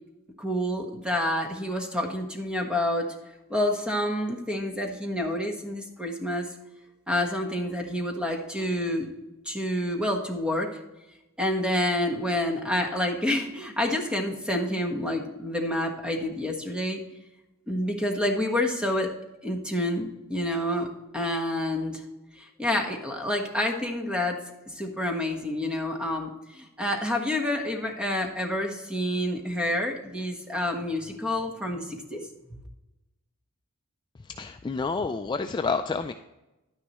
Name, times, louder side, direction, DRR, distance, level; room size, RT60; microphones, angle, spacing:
voice 1, 0.4-3.1 3.5-6.5 7.1-9.1 9.4-10.7 11.4-17.0 17.7-19.1 19.4-22.0 22.4-24.4 24.7-32.2, left 1 dB, 5° right, 2 dB, 1.3 m, -28 dB
voice 2, 34.2-36.1, left 4 dB, 20° left, 7 dB, 0.3 m, -29 dB
11.5 x 9.6 x 3.0 m, 1.0 s
head